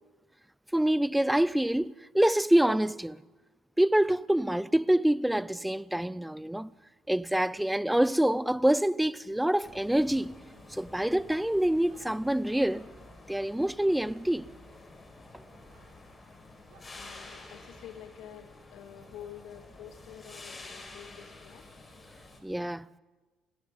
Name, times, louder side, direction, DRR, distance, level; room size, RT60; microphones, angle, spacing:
voice 1, 0.7-3.2 3.8-6.7 7.1-10.4 10.7-12.9 13.3-14.5 22.4-22.9, right 1 dB, 5° right, 0.6 m, -26 dB
sound 1, 9.5-9.7 11.8-12.1 14.0-14.2 15.6-15.9 16.7-16.9 19.0-19.1 20.2-20.4, right 5 dB, 65° right, 7.5 m, -61 dB
sound 2, 9.6-22.4, left 2 dB, 25° left, 5.1 m, -50 dB
voice 2, 17.0-21.7, left 10 dB, 60° left, 2.1 m, -48 dB
28.5 x 27.5 x 4.0 m
figure-of-eight pair, 50°, 0 cm